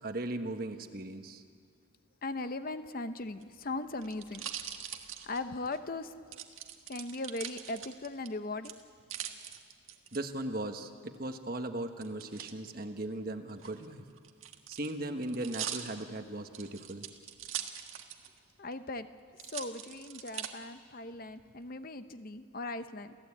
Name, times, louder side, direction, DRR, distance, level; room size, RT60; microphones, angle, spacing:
voice 1, 0.0-1.4 10.1-14.0 14.7-17.1, right 1 dB, 45° right, 7 dB, 1.3 m, -38 dB
voice 2, 2.2-4.4 5.3-6.1 6.9-8.8 18.6-19.1 19.5-23.2, left 2 dB, 45° left, 10 dB, 0.8 m, -38 dB
sound 1, 3.3-5.8 6.3-8.3 8.6-10.2 12.0-12.5 13.5-18.4 18.7-18.8 19.4-20.5 21.1-21.7, right 10 dB, 80° right, 1.6 m, -42 dB
28.5 x 15.5 x 8.7 m, 2.1 s
head